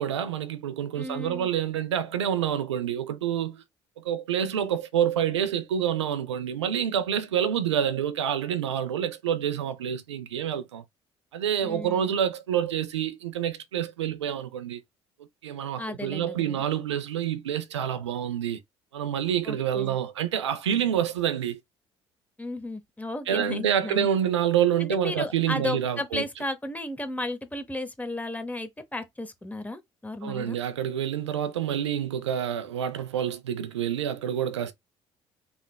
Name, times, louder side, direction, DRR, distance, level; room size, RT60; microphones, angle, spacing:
voice 1, 0.0-3.6 4.0-10.8 11.3-14.8 15.4-18.6 18.9-21.6 23.3-26.2 30.2-34.7, right 9 dB, 90° right, 0.4 m, -27 dB
voice 2, 1.0-1.5 11.6-12.1 15.8-16.6 19.4-20.0 22.4-24.1 24.8-30.6, left 1 dB, 10° left, 0.8 m, -34 dB
3.2 x 2.9 x 2.2 m
hypercardioid pair, 55°, 14 cm